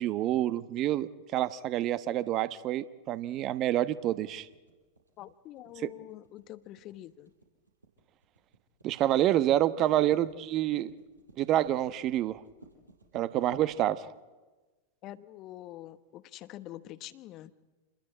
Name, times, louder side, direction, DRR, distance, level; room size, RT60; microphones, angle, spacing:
voice 1, 0.0-4.5 5.8-5.9 8.8-10.9 11.4-12.4 13.1-14.1, right 13 dB, 35° right, 1.1 m, -28 dB
sound 1, 3.2-14.2, right 3 dB, 80° right, 5.4 m, -54 dB
voice 2, 5.2-7.3 9.9-10.0 15.0-17.5, left 14 dB, 35° left, 1.1 m, -46 dB
28.5 x 21.0 x 8.8 m
figure-of-eight pair, 90°, 0 cm